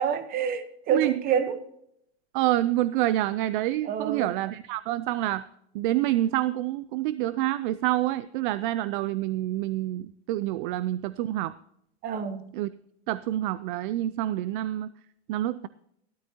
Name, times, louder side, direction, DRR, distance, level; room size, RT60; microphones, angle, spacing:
voice 1, 0.0-1.6 3.8-4.3 12.0-12.5, right 7 dB, 25° right, 1.0 m, -28 dB
voice 2, 2.3-5.4 5.7-11.6 12.5-12.7 13.1-14.9 15.3-15.7, right 15 dB, 50° right, 0.5 m, -27 dB
15.0 x 13.0 x 2.8 m
supercardioid pair, 145°, 32 cm